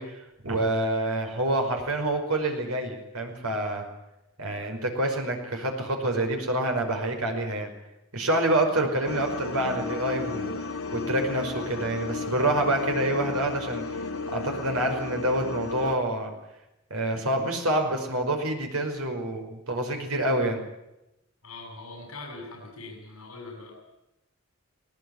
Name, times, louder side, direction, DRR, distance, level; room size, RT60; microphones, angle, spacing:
voice 1, 0.0-3.8 4.4-7.7 8.1-10.5 10.9-14.0 14.3-16.3 16.9-20.6, right 1 dB, 85° right, 3 dB, 5.5 m, -27 dB
sound 1, 9.0-16.0, left 4 dB, 80° left, 2.2 m, -33 dB
voice 2, 21.4-24.0, left 3 dB, 65° left, -1 dB, 6.7 m, -42 dB
20.0 x 19.0 x 9.8 m, 0.92 s
head